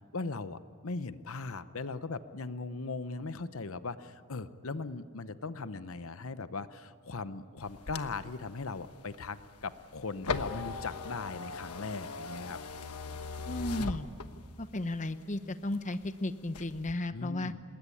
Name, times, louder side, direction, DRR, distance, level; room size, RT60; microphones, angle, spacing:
voice 1, 0.1-12.6 17.1-17.6, left 3 dB, 65° left, 12 dB, 0.9 m, -39 dB
sound 1, 7.6-14.6 15.1-16.1 16.4-16.9, left 4 dB, 90° left, 1.2 m, -39 dB
voice 2, 13.4-14.1 14.6-17.5, left 1 dB, 35° left, 11 dB, 0.8 m, -34 dB
27.0 x 20.5 x 9.9 m, 2.3 s
head